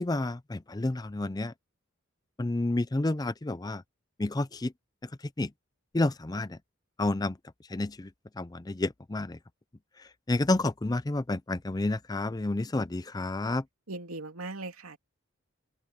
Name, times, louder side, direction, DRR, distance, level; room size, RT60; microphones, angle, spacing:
voice 1, 0.0-1.5 2.4-3.8 4.2-4.7 5.4-5.5 5.9-6.6 7.0-7.4 7.7-8.1 8.4-9.4 10.3-13.6, left 2 dB, 20° left, 0.5 m, -30 dB
voice 2, 13.9-15.0, right 2 dB, 85° right, 2.8 m, -39 dB
open air
head